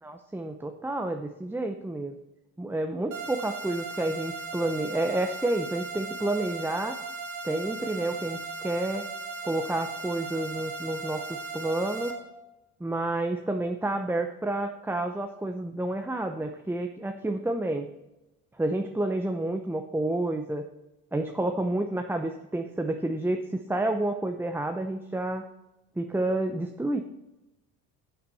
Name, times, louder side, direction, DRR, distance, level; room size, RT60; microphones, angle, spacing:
voice 1, 0.0-2.2 2.6-7.0 7.4-9.1 9.4-11.3 11.5-12.2 12.8-17.9 18.6-20.6 21.1-25.5 26.0-27.0, right 2 dB, 5° right, 5 dB, 0.7 m, -29 dB
sound 1, 3.1-12.1, right 3 dB, 45° right, 2.9 m, -37 dB
12.0 x 6.8 x 4.2 m, 0.97 s
hypercardioid pair, 75°, 44 cm